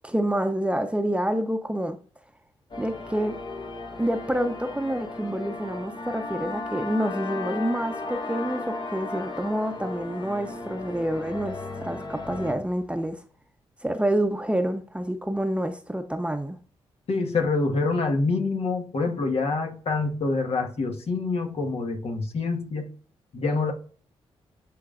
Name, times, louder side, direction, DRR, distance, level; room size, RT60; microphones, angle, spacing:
voice 1, 0.0-2.0 2.8-3.4 4.0-13.2 13.8-16.6, right 1 dB, 10° right, 0.9 m, -28 dB
sound 1, 2.7-12.6, left 3 dB, 40° left, 1.3 m, -35 dB
voice 2, 17.1-22.9 23.3-23.7, left 3 dB, 60° left, 1.6 m, -26 dB
11.5 x 3.8 x 2.5 m
supercardioid pair, 50°, 11 cm